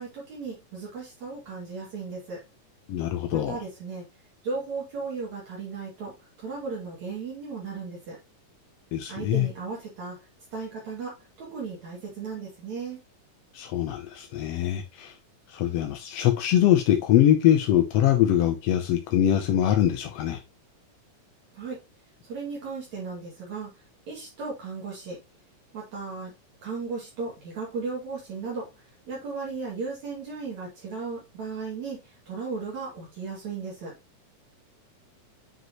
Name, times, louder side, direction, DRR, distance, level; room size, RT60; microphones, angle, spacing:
voice 1, 0.0-2.4 3.3-4.1 4.4-8.2 9.1-10.2 10.5-13.0 21.5-21.8 22.2-23.7 24.1-25.2 25.7-26.3 26.6-28.7 29.1-33.9, right 4 dB, 65° right, 3.5 m, -36 dB
voice 2, 2.9-3.6 8.9-9.5 13.5-15.1 15.5-20.4, left 11 dB, 75° left, 1.5 m, -23 dB
7.9 x 5.1 x 3.0 m
omnidirectional pair, 3.6 m